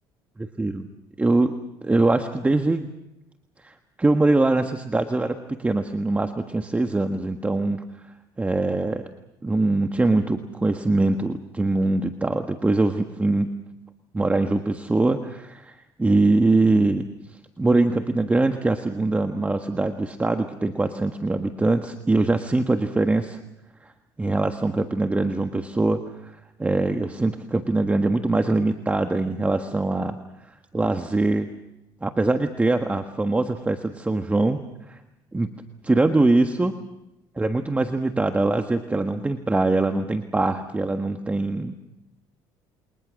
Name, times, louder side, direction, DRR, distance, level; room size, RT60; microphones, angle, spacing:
voice 1, 0.4-0.9 1.2-1.5 1.8-2.9 3.6-7.8 8.4-9.0 9.4-13.5 14.1-17.1 17.6-23.4 24.2-26.3 26.6-30.2 30.7-31.5 32.0-35.0 35.3-35.5 35.9-36.7 37.4-41.7, right 2 dB, 15° right, 6 dB, 1.5 m, -23 dB
28.5 x 23.0 x 6.4 m, 0.91 s
cardioid pair, 95°, 10 cm